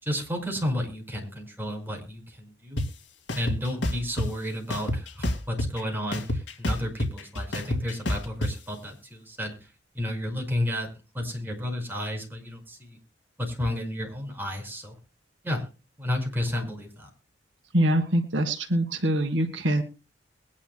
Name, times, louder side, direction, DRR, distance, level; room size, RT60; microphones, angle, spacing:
voice 1, 0.0-2.8 3.3-9.5 10.0-10.9 11.1-13.0 13.4-14.9 15.4-15.6 16.0-17.1, left 1 dB, 10° right, 1 dB, 5.2 m, -32 dB
sound 1, 2.8-2.9 3.3-4.3 4.7-5.8 6.1-8.5, left 1 dB, 80° left, 2.3 m, -27 dB
voice 2, 17.7-19.8, right 1 dB, 80° right, 6 dB, 1.9 m, -24 dB
22.5 x 10.5 x 2.2 m, 0.31 s
head